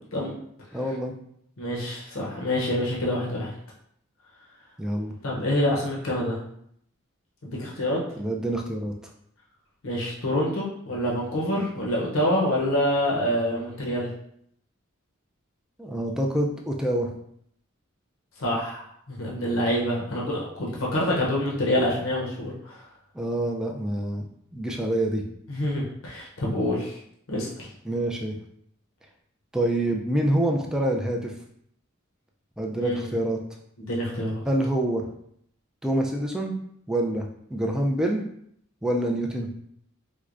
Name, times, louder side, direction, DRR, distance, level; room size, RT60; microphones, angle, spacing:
voice 1, 0.7-1.1 4.8-5.1 8.2-8.9 15.8-17.1 23.1-24.2 24.5-25.2 27.9-28.4 29.5-31.3 32.6-33.4 34.4-35.1 35.8-36.5 36.9-38.2 38.8-39.5, right 1 dB, 5° right, 1 dB, 0.3 m, -26 dB
voice 2, 1.6-3.5 5.2-6.4 7.4-8.0 9.8-14.1 18.4-22.8 25.5-27.0 27.3-27.7 32.8-33.1 33.8-34.4, left 1 dB, 70° left, -3 dB, 0.7 m, -26 dB
4.5 x 2.1 x 2.5 m, 0.70 s
head